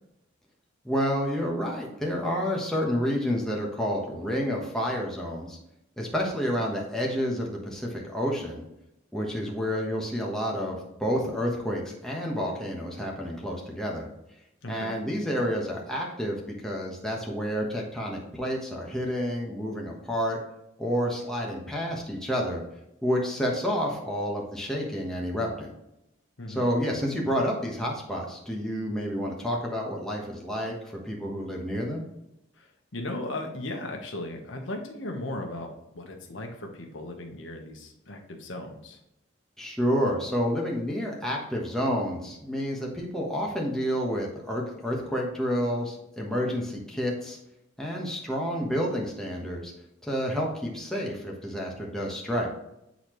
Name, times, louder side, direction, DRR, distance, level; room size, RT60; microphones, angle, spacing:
voice 1, 0.8-5.6 6.0-8.6 9.1-14.1 14.7-20.4 20.8-22.6 23.0-25.7 26.5-32.0 39.6-47.4 47.8-49.7 50.0-52.5, equal, 5° left, -3 dB, 1.2 m, -29 dB
voice 2, 14.6-15.0 26.4-26.7 32.6-39.0, left 1 dB, 85° left, 2 dB, 1.2 m, -37 dB
8.6 x 4.0 x 3.1 m, 0.84 s
head